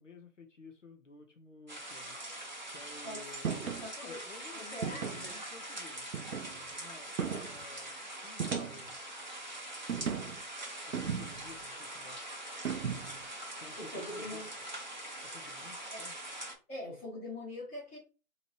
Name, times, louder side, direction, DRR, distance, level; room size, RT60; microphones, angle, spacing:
voice 1, 0.0-2.2 2.7-6.1 6.7-8.9 10.9-12.3 13.6-14.3 15.2-16.2, left 4 dB, 55° left, 0.8 m, -53 dB
sound 1, 1.7-16.5, right 1 dB, 30° right, 0.6 m, -43 dB
voice 2, 3.0-4.2 4.5-5.4 13.8-14.5 15.9-16.0 16.7-18.0, left 1 dB, 10° left, 1.0 m, -43 dB
sound 2, 3.4-3.9 4.8-5.3 6.1-6.7 7.2-7.6 8.4-9.0 9.9-10.4 10.9-11.6 12.6-13.2, right 7 dB, 70° right, 0.5 m, -36 dB
4.2 x 2.9 x 3.1 m
figure-of-eight pair, 160°, 44 cm